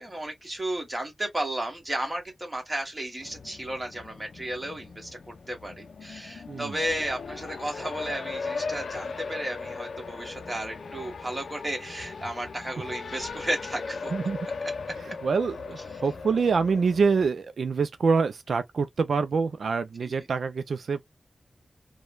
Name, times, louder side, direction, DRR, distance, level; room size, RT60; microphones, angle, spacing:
voice 1, 0.0-5.2 5.5-14.1 15.9-16.0 20.0-20.3, right 1 dB, 20° right, 1.4 m, -33 dB
Race car auto racing, 3.2-17.3, left 4 dB, 85° left, 0.4 m, -38 dB
voice 2, 15.2-21.1, right 5 dB, 90° right, 0.4 m, -26 dB
3.0 x 2.2 x 2.2 m
wide cardioid pair, 115°, 0 cm